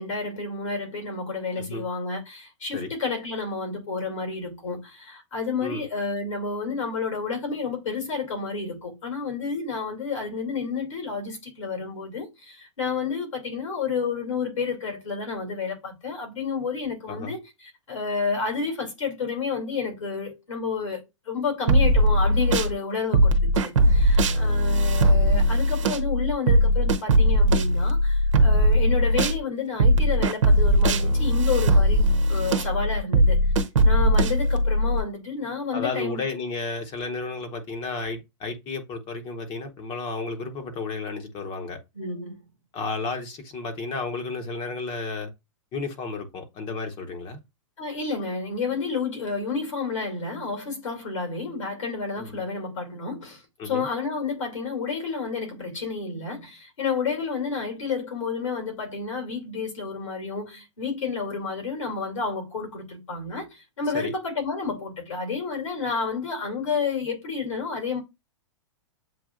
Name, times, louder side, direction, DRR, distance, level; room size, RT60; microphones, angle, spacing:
voice 1, 0.0-32.0 32.3-33.5 33.8-36.3 41.9-42.4 47.8-68.0, left 5 dB, 80° left, 2.7 m, -30 dB
sound 1, 21.7-22.7 23.1-29.4 29.8-35.0, equal, 75° right, 0.8 m, -19 dB
voice 2, 35.7-41.8 42.7-45.3 45.7-47.4 52.2-52.4 53.6-53.9 63.9-64.1, left 3 dB, 30° left, 1.0 m, -32 dB
7.7 x 2.7 x 2.4 m
hypercardioid pair, 120°, 16 cm